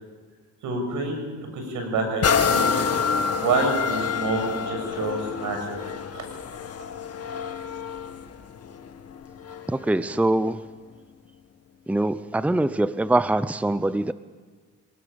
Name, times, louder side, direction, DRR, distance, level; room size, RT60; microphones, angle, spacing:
voice 1, 0.6-2.8 3.3-5.8 6.1-6.2, right 3 dB, 80° right, 3 dB, 7.6 m, -28 dB
sound 1, 2.2-9.8 10.4-10.5, left 6 dB, 55° left, 2.1 m, -27 dB
voice 2, 9.7-10.6 11.9-14.1, right 2 dB, 5° right, 14 dB, 0.7 m, -23 dB
25.5 x 19.5 x 7.1 m, 1.5 s
cardioid pair, 90°, 30 cm